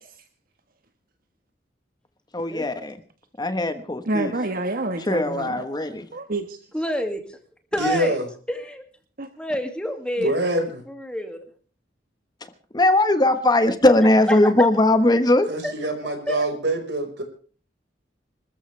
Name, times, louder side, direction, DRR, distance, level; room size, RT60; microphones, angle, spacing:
voice 1, 2.3-2.9 3.4-4.3 5.0-6.1 12.7-15.5, left 1 dB, 25° left, 10 dB, 1.3 m, -19 dB
voice 2, 4.1-5.6 6.1-6.6 9.2-9.3, right 2 dB, 55° right, 7 dB, 1.5 m, -28 dB
voice 3, 6.7-7.4 7.7-8.2 8.5-8.8 9.4-11.4 14.0-14.7 15.6-15.7 16.3-16.4, equal, 5° left, 5 dB, 2.4 m, -28 dB
voice 4, 7.8-8.2 10.2-10.7 15.5-17.2, right 1 dB, 70° right, 5 dB, 5.0 m, -25 dB
27.0 x 14.0 x 3.4 m, 0.41 s
head